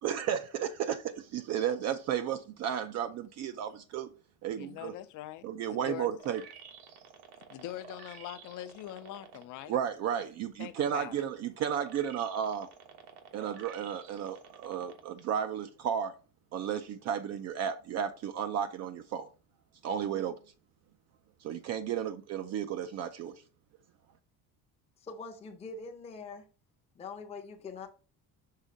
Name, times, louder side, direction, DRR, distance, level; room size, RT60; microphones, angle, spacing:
voice 1, 0.0-1.0 1.3-4.1 4.4-4.9 5.4-6.4 9.7-12.7 13.3-16.1 16.5-19.3 19.8-20.4 21.4-23.4, right 9 dB, 45° right, 0.5 m, -33 dB
voice 2, 4.5-6.1 7.5-9.7 10.6-11.1, left 13 dB, 50° left, 0.6 m, -43 dB
sound 1, 6.2-9.6 10.1-15.2 15.7-15.8, right 7 dB, 80° right, 1.4 m, -51 dB
voice 3, 25.0-26.5 26.9-27.9, left 4 dB, 15° left, 0.7 m, -43 dB
5.7 x 3.6 x 5.0 m
cardioid pair, 180°, 39 cm